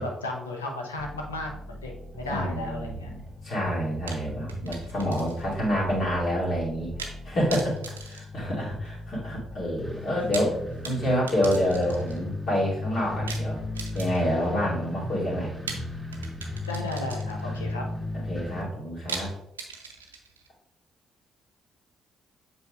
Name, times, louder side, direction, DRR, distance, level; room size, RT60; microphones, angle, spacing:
voice 1, 0.0-3.1 16.7-17.8, left 2 dB, 80° left, 1 dB, 0.8 m, -34 dB
sound 1, 1.0-18.6, left 2 dB, 10° left, 1.6 m, -37 dB
voice 2, 2.3-3.2 3.4-7.7 8.0-10.5 10.8-13.6 13.9-15.5 17.4-17.6 18.1-19.3, equal, 55° left, -6 dB, 2.6 m, -28 dB
sound 2, 4.1-5.6 5.9-6.0 7.0-7.2 7.5-9.0 10.1-12.2 13.3-14.5 15.7-17.6 19.1-20.5, right 5 dB, 80° right, 0.5 m, -40 dB
7.9 x 5.6 x 2.4 m, 0.80 s
figure-of-eight pair, 40°, 0 cm